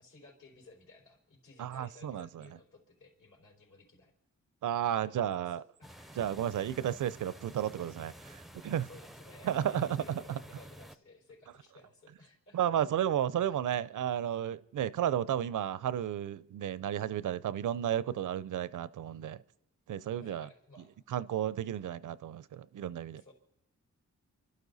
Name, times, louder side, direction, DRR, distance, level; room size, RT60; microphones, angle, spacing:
voice 1, 0.0-4.1 5.0-5.6 5.9-6.5 8.1-8.2 8.5-12.8 13.4-13.6 20.2-20.9 23.1-23.3, left 2 dB, 70° left, -1 dB, 4.7 m, -57 dB
voice 2, 1.6-2.4 4.6-5.6 6.2-8.9 9.4-10.0 10.3-10.4 12.5-19.4 19.9-20.5 21.1-23.2, right 10 dB, 75° right, 18 dB, 0.6 m, -33 dB
sound 1, 5.8-11.0, right 1 dB, ahead, 0.5 m, -51 dB
29.5 x 12.0 x 4.1 m, 0.89 s
cardioid pair, 105°, 31 cm